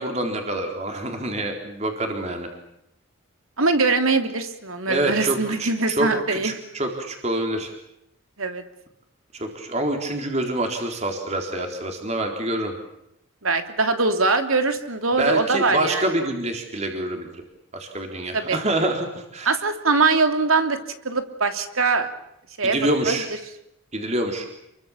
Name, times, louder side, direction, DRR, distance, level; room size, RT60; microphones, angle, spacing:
voice 1, 0.0-2.5 4.9-7.7 9.3-12.7 15.2-17.4 17.7-19.5 22.6-23.3 23.9-24.5, right 1 dB, 30° right, 3 dB, 3.9 m, -26 dB
voice 2, 3.6-6.5 8.4-8.6 13.4-16.0 18.3-18.6 19.4-20.8 21.0-22.1 22.6-23.2, right 3 dB, 75° right, 7 dB, 3.1 m, -22 dB
29.0 x 23.5 x 7.3 m, 0.79 s
head